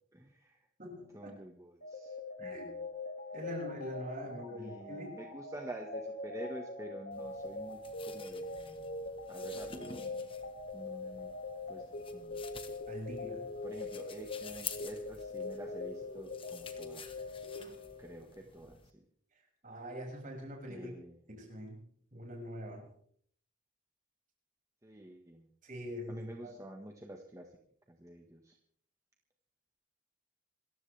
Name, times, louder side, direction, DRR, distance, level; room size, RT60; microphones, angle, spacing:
voice 1, 0.1-0.7 1.1-2.9 4.5-8.8 9.3-10.3 10.7-11.3 11.7-12.4 13.6-17.2 18.0-19.0 20.7-21.2 24.8-25.5 26.1-27.5 27.9-28.6, right 1 dB, 15° right, 2 dB, 1.5 m, -48 dB
voice 2, 0.8-1.3 2.4-2.7 3.3-5.2 12.9-13.5 17.5-17.7 19.6-20.9 21.3-22.9 25.6-26.5, equal, 40° right, 0 dB, 6.5 m, -44 dB
sound 1, 1.8-18.4, left 3 dB, 55° left, 2.2 m, -43 dB
sound 2, 7.1-18.9, left 6 dB, 25° left, 1.5 m, -50 dB
27.5 x 15.0 x 3.4 m, 0.62 s
head